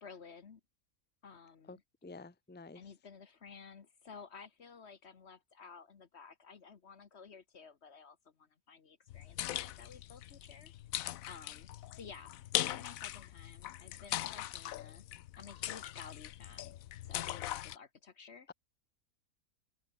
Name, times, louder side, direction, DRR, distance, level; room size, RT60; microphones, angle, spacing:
voice 1, 0.0-0.6 1.2-1.8 2.7-10.7 11.3-15.0 15.4-16.8 17.0-18.5, left 5 dB, 50° left, 1.4 m, -54 dB
voice 2, 2.0-2.8, left 3 dB, 10° left, 0.9 m, -49 dB
sound 1, 9.1-17.8, left 13 dB, 75° left, 1.1 m, -40 dB
open air
omnidirectional pair, 1.5 m